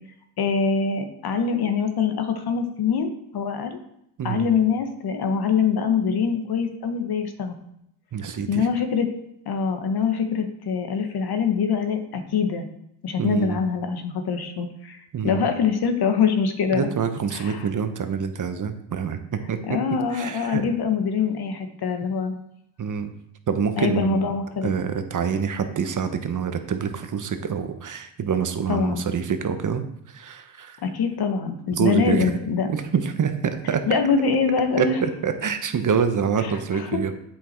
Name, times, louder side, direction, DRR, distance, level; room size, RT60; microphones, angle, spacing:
voice 1, 0.4-3.8 4.2-7.5 8.5-9.1 9.4-12.7 13.0-15.0 15.2-16.9 17.3-17.6 19.6-22.3 23.8-24.7 28.7-29.0 30.8-32.7 33.9-35.0 36.7-37.0, left 6 dB, 50° left, 7 dB, 1.5 m, -24 dB
voice 2, 4.2-4.5 8.1-8.7 13.2-13.6 15.1-15.5 16.7-19.8 20.1-20.6 22.8-23.1 23.5-24.3 24.6-30.8 31.7-32.4 32.7-33.8 34.8-37.1, right 6 dB, 40° right, 8 dB, 1.2 m, -26 dB
8.1 x 6.5 x 4.5 m, 0.77 s
supercardioid pair, 75°, 49 cm